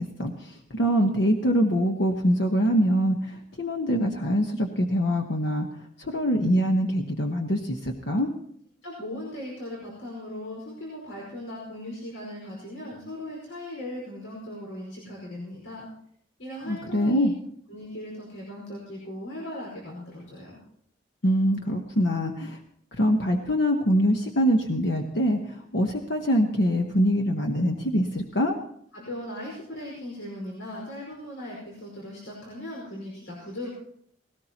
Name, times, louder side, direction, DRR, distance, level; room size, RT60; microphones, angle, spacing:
voice 1, 0.0-5.7 6.0-8.3 16.7-17.3 21.2-22.6 23.0-28.6, equal, 60° left, 3 dB, 1.2 m, -24 dB
voice 2, 8.8-15.9 16.4-17.3 17.7-20.6 28.9-33.7, left 1 dB, 85° left, -3 dB, 5.2 m, -38 dB
19.5 x 18.0 x 3.0 m, 0.69 s
head